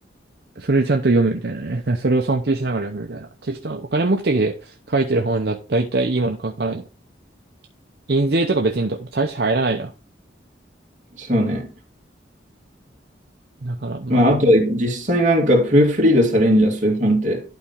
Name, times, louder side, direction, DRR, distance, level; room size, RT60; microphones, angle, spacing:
voice 1, 0.6-6.8 8.1-9.9 13.6-14.2, right 2 dB, 60° right, 0.8 m, -22 dB
voice 2, 11.2-11.7 14.1-17.4, equal, 40° right, 2.2 m, -17 dB
11.5 x 4.2 x 3.6 m
head